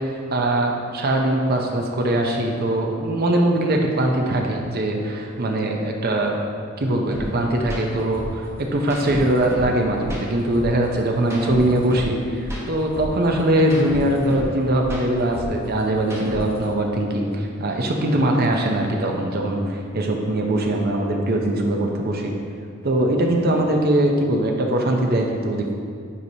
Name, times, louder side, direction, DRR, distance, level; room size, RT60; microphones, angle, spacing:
voice 1, 0.0-6.4 6.8-22.3 22.8-25.7, right 1 dB, 50° right, 1 dB, 0.7 m, -21 dB
sound 1, 7.1-7.2 7.6-7.8 8.1-9.7 10.0-12.1 12.4-14.5 14.8-16.6, equal, 15° right, 1.1 m, -32 dB
9.6 x 4.7 x 2.8 m, 2.2 s
head